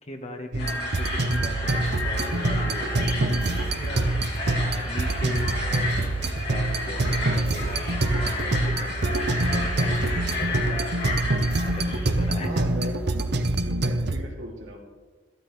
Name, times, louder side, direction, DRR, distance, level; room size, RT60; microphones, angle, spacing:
voice 1, 0.0-4.1 4.5-10.9 11.6-12.7, left 1 dB, 35° left, 4 dB, 1.2 m, -38 dB
sound 1, 0.5-14.2, right 2 dB, 60° right, 0.7 m, -26 dB
sound 2, 0.6-12.3, left 2 dB, 60° left, 2.6 m, -32 dB
sound 3, 1.7-13.6, right 1 dB, 10° right, 0.3 m, -37 dB
voice 2, 12.4-13.3 13.6-14.8, equal, 80° right, -2 dB, 2.9 m, -37 dB
13.0 x 13.0 x 3.3 m, 1.4 s
head